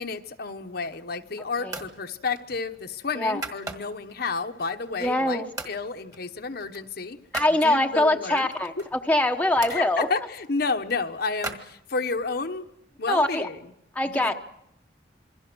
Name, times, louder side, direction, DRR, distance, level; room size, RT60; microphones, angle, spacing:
voice 1, 0.0-7.2 7.6-8.5 9.7-12.7 13.0-13.6 14.0-14.3, left 4 dB, 55° left, 6 dB, 1.1 m, -31 dB
sound 1, 0.7-1.2 1.7-2.0 2.3-4.1 4.6-5.3 5.6-5.8 6.1-7.6 8.3-9.8 10.4-12.3, right 3 dB, 20° right, 1.8 m, -39 dB
voice 2, 5.0-5.4 7.3-10.1 13.1-13.5 13.9-14.3, left 1 dB, 10° left, 4 dB, 1.0 m, -23 dB
27.5 x 22.0 x 6.2 m, 0.79 s
head